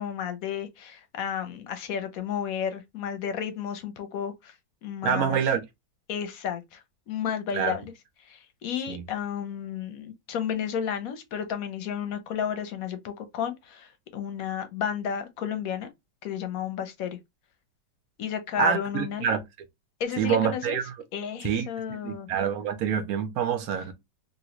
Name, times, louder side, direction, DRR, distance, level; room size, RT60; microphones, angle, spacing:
voice 1, 0.0-4.5 4.8-5.4 6.1-6.8 7.1-7.8 8.3-15.9 16.2-17.2 18.2-19.4 20.0-20.8 21.1-22.3, left 8 dB, 65° left, 0.9 m, -32 dB
voice 2, 5.0-5.6 7.5-7.7 8.9-9.0 18.6-19.4 20.2-20.9 21.4-23.9, right 8 dB, 70° right, 0.9 m, -26 dB
3.0 x 2.6 x 2.9 m
omnidirectional pair, 1.9 m